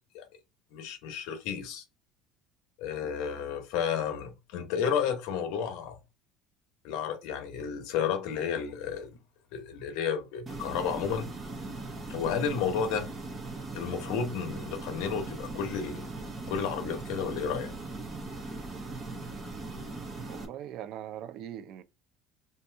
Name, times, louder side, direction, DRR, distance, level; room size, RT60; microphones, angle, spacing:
voice 1, 0.7-1.8 2.8-6.0 6.8-9.1 9.5-11.3 12.1-13.1 13.7-16.1 16.5-17.7, left 7 dB, 70° left, 0.8 m, -32 dB
sound 1, 10.5-20.5, right 3 dB, 20° right, 0.7 m, -39 dB
voice 2, 20.3-21.8, right 10 dB, 55° right, 0.3 m, -41 dB
2.7 x 2.6 x 3.3 m
cardioid pair, 155°, 0 cm